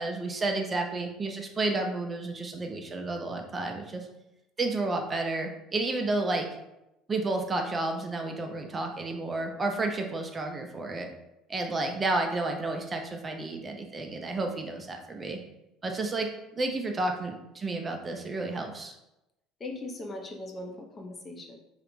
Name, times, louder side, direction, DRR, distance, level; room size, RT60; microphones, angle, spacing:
voice 1, 0.0-4.1 4.6-6.5 7.1-11.1 11.5-15.4 15.8-19.0, right 2 dB, 25° right, 3 dB, 0.4 m, -31 dB
voice 2, 19.6-21.6, left 2 dB, 30° left, 2 dB, 0.5 m, -39 dB
2.4 x 2.0 x 3.0 m, 0.89 s
supercardioid pair, 90°, 0 cm